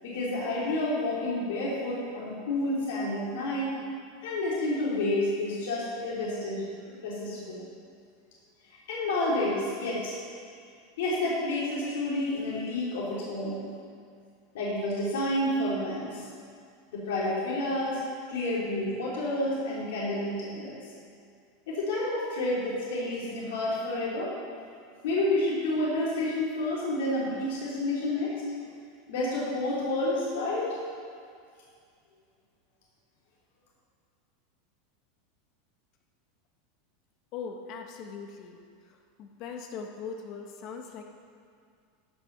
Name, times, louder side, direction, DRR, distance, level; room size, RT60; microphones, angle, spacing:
voice 1, 0.0-3.7 4.2-7.6 8.9-10.2 11.0-13.7 14.5-16.3 16.9-18.0 18.3-20.8 21.7-24.3 25.0-28.3 29.1-30.7, left 1 dB, 80° left, -6 dB, 3.4 m, -29 dB
voice 2, 37.3-38.6 38.8-41.0, left 5 dB, 50° left, 3 dB, 1.2 m, -40 dB
14.5 x 6.3 x 6.0 m, 2.2 s
supercardioid pair, 125°, 0 cm